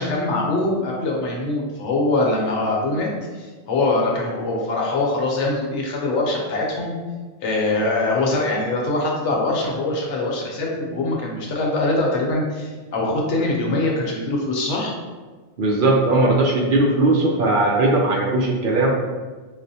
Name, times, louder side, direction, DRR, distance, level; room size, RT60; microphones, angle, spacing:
voice 1, 0.0-3.1 3.3-6.9 7.4-14.9, left 2 dB, 75° left, -2 dB, 1.0 m, -23 dB
voice 2, 15.6-18.9, right 2 dB, 60° right, -1 dB, 0.6 m, -18 dB
4.7 x 2.1 x 2.7 m, 1.3 s
omnidirectional pair, 1.2 m